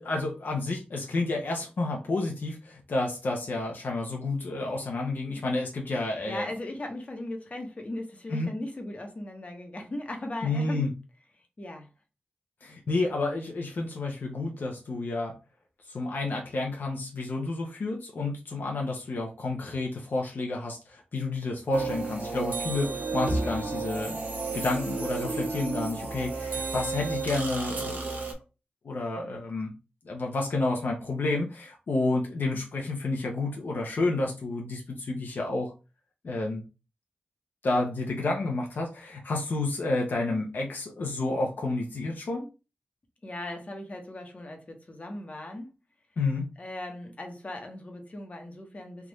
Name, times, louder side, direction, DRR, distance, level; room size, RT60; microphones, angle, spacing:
voice 1, 0.0-6.5 8.3-8.5 10.4-10.9 12.6-15.3 15.9-24.2 24.5-28.2 28.8-29.7 30.0-35.7 36.2-36.6 37.6-42.4 46.2-46.5, left 2 dB, 70° left, 0.8 m, -30 dB
voice 2, 6.2-10.9 11.6-11.9 43.2-45.7 46.6-49.1, left 1 dB, 40° left, 1.0 m, -38 dB
sound 1, 21.7-28.3, right 3 dB, 60° right, 1.2 m, -32 dB
3.5 x 2.5 x 3.0 m
wide cardioid pair, 70°, 3 cm